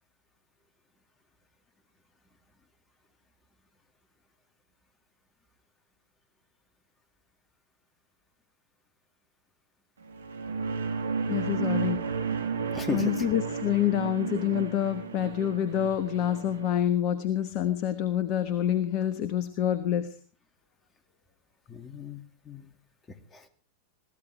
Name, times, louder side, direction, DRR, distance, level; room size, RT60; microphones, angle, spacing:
sound 1, 10.1-16.7, right 5 dB, 70° right, 1.4 m, -32 dB
voice 1, 11.3-12.0 12.5-20.1, left 11 dB, 45° left, 13 dB, 1.2 m, -27 dB
voice 2, 12.7-13.2 21.7-22.7 23.3-23.5, left 5 dB, 15° left, 10 dB, 2.2 m, -36 dB
22.0 x 16.5 x 3.4 m, 0.37 s
figure-of-eight pair, 90°, 0 cm